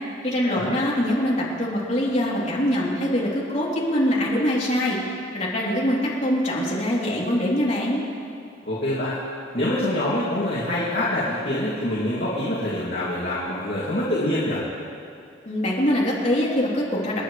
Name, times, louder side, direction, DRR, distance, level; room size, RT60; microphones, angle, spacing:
voice 1, 0.2-8.0 15.4-17.2, equal, 40° left, -6 dB, 3.4 m, -23 dB
voice 2, 8.7-9.2 9.5-14.6, left 1 dB, 60° left, -9 dB, 2.6 m, -25 dB
29.0 x 10.5 x 3.3 m, 2.5 s
head